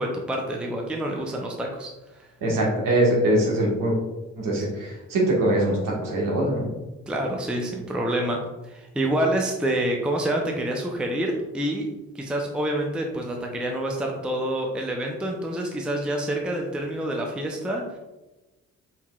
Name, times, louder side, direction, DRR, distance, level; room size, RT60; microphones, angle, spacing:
voice 1, 0.0-2.3 7.1-8.4 8.6-11.9 12.1-18.0, right 1 dB, ahead, 1 dB, 0.5 m, -27 dB
voice 2, 2.4-4.0 4.4-6.7, right 1 dB, 55° right, -3 dB, 1.4 m, -22 dB
4.4 x 3.6 x 2.3 m, 1.1 s
figure-of-eight pair, 45°, 39 cm